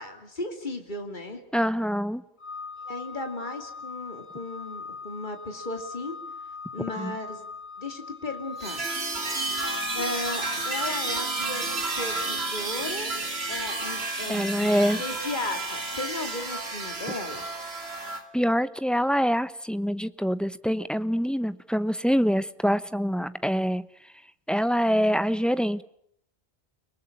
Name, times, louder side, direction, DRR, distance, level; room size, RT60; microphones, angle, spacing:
voice 1, 0.0-1.4 2.9-6.2 6.7-7.5 7.8-8.8 9.9-13.2 13.5-17.5, left 2 dB, 45° left, 5 dB, 3.2 m, -35 dB
voice 2, 1.5-2.2 7.0-7.2 14.3-15.0 18.3-23.9 24.5-25.8, equal, ahead, 14 dB, 0.8 m, -25 dB
Organ, 2.4-13.1, left 4 dB, 70° left, 2.2 m, -41 dB
sound 1, 8.6-18.2, right 2 dB, 65° right, 2.7 m, -31 dB
30.0 x 19.5 x 8.7 m, 0.70 s
omnidirectional pair, 1.1 m